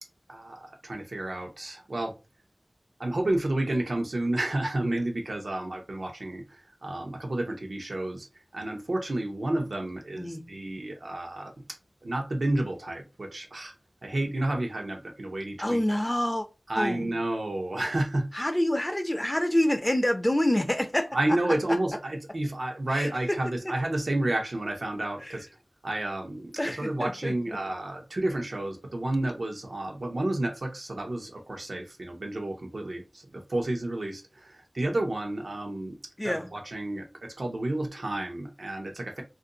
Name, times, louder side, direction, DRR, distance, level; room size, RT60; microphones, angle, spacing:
voice 1, 0.3-2.1 3.0-8.3 8.5-11.5 12.0-13.7 14.0-15.8 16.7-18.5 21.1-25.5 25.8-36.0 36.2-39.2, right 1 dB, 80° right, 0.7 m, -31 dB
voice 2, 15.6-16.5 16.8-17.1 18.3-21.2 21.7-21.8 22.9-23.4 25.2-25.4 26.6-27.6 36.2-36.5, left 1 dB, 20° left, 0.5 m, -27 dB
2.5 x 2.2 x 3.8 m
wide cardioid pair, 45°, 0 cm